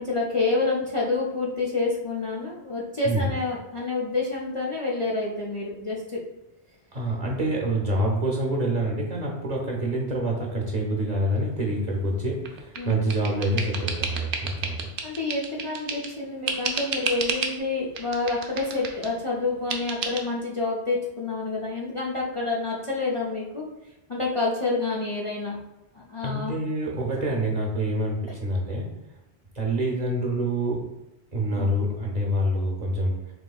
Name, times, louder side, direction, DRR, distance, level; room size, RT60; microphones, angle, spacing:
voice 1, 0.0-6.2 7.7-7.8 12.8-13.0 15.0-23.6 24.1-25.6 25.9-26.5 31.5-31.8, left 3 dB, 40° left, -4 dB, 0.5 m, -28 dB
voice 2, 6.9-14.8 26.2-28.9 29.5-30.8 31.3-33.3, right 1 dB, 45° right, 0 dB, 0.7 m, -26 dB
sound 1, 12.5-16.2 16.5-17.6 18.0-19.1 19.7-20.2, right 5 dB, 80° right, 0.9 m, -31 dB
6.1 x 2.7 x 2.3 m, 0.91 s
omnidirectional pair, 1.1 m